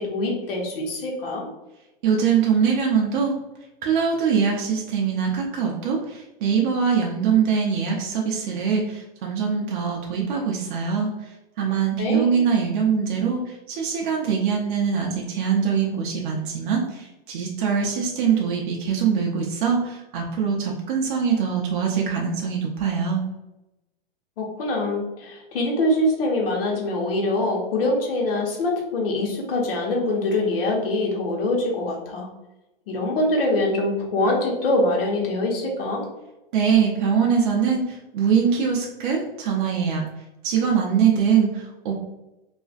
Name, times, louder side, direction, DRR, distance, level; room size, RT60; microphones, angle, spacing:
voice 1, 0.0-1.5 12.0-12.3 24.4-32.3 32.9-36.0, left 1 dB, 70° left, -1 dB, 0.9 m, -24 dB
voice 2, 2.0-3.3 3.8-11.1 11.6-23.2 36.5-40.0 40.4-42.0, right 6 dB, 55° right, -1 dB, 0.5 m, -23 dB
2.4 x 2.1 x 2.4 m, 0.96 s
hypercardioid pair, 120°, 30 cm